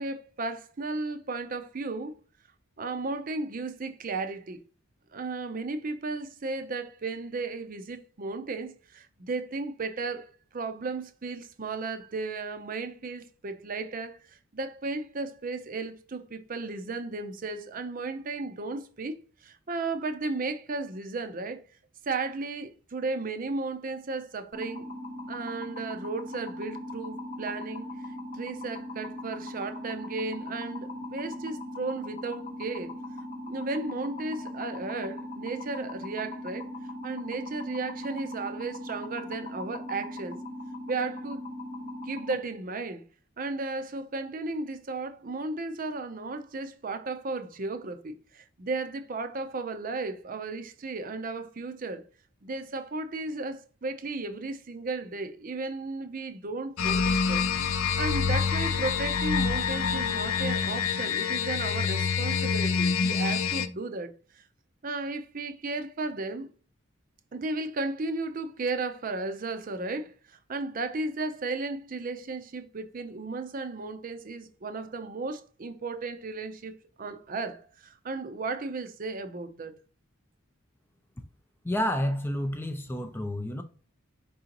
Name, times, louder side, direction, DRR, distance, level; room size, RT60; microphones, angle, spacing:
voice 1, 0.0-2.1 2.8-4.6 5.1-21.6 22.1-24.9 25.3-32.9 33.5-36.7 37.0-40.4 40.9-41.5 42.0-43.0 43.4-52.0 52.4-57.4 58.0-64.1 64.3-64.4 64.8-66.5 67.3-79.7, right 3 dB, 40° right, 0.5 m, -34 dB
sound 1, 24.5-42.4, left 1 dB, 40° left, 1.0 m, -39 dB
sound 2, 56.8-63.7, left 6 dB, 85° left, 0.5 m, -26 dB
voice 2, 81.6-83.6, equal, 10° left, 0.4 m, -29 dB
4.8 x 3.8 x 2.9 m
head